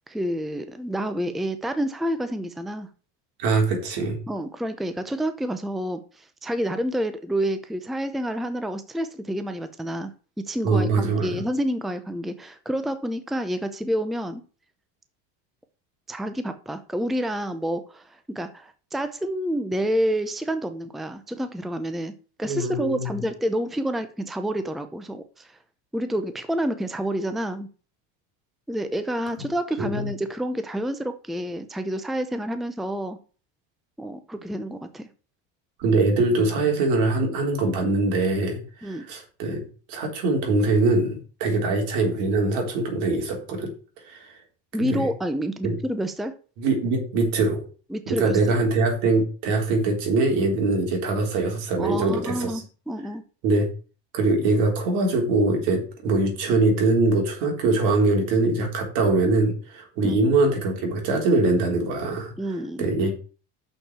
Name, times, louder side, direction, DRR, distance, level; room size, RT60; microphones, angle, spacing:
voice 1, 0.1-2.9 4.3-10.1 10.4-14.4 16.1-22.1 22.4-25.6 25.9-27.7 28.7-33.2 34.0-35.1 38.8-39.0 44.7-46.3 47.9-48.4 51.8-53.2 60.0-60.1 62.4-62.8, equal, ahead, 10 dB, 0.6 m, -28 dB
voice 2, 3.4-4.2 10.6-11.4 22.4-23.2 29.8-30.1 35.8-39.6 39.9-43.7 44.1-44.3 44.8-45.1 45.6-45.8 46.6-47.7 48.1-52.6 53.4-53.7 54.1-63.1, right 3 dB, 75° right, 2 dB, 3.7 m, -23 dB
6.6 x 6.0 x 7.2 m, 0.38 s
cardioid pair, 140°, 35 cm